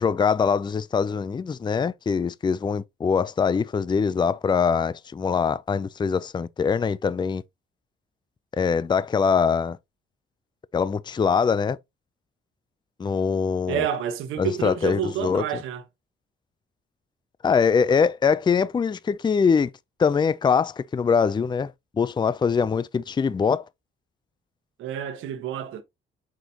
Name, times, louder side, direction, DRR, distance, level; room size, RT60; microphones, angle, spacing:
voice 1, 0.0-7.4 8.6-9.8 10.7-11.8 13.0-13.9 14.4-15.4 17.4-19.7 20.0-21.7 22.0-23.7, left 6 dB, 25° left, 0.4 m, -23 dB
voice 2, 13.7-15.8 24.8-25.8, right 8 dB, 90° right, 1.4 m, -29 dB
7.5 x 5.1 x 2.9 m
cardioid pair, 90°, 20 cm